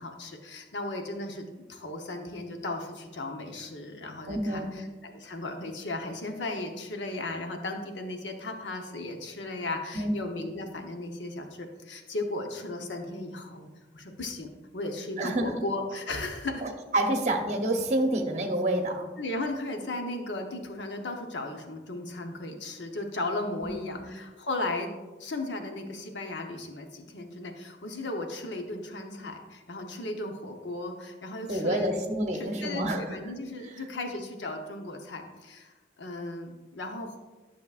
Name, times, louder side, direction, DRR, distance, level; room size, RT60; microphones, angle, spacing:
voice 1, 0.0-4.7 5.0-13.7 13.9-16.7 19.2-24.9 25.2-32.0 32.3-37.2, left 2 dB, 90° left, 4 dB, 0.9 m, -36 dB
voice 2, 4.3-4.7 9.9-10.2 15.2-15.6 16.6-19.1 23.6-24.1 31.5-33.0 33.6-33.7, right 1 dB, 40° right, 3 dB, 0.8 m, -28 dB
10.5 x 6.0 x 2.4 m, 1.2 s
head